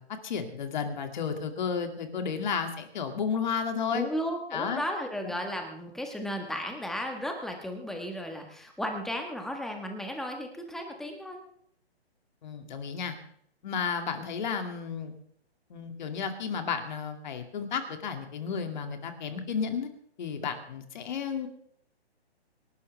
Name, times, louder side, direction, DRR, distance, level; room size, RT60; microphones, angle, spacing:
voice 1, 0.0-4.1 4.5-4.8 5.2-5.3 12.4-13.2 13.6-15.1 15.7-19.9 20.2-21.5, left 6 dB, 45° left, 6 dB, 2.4 m, -32 dB
voice 2, 3.9-11.4, equal, ahead, 3 dB, 1.4 m, -34 dB
26.5 x 12.0 x 3.4 m, 0.66 s
hypercardioid pair, 155°, 33 cm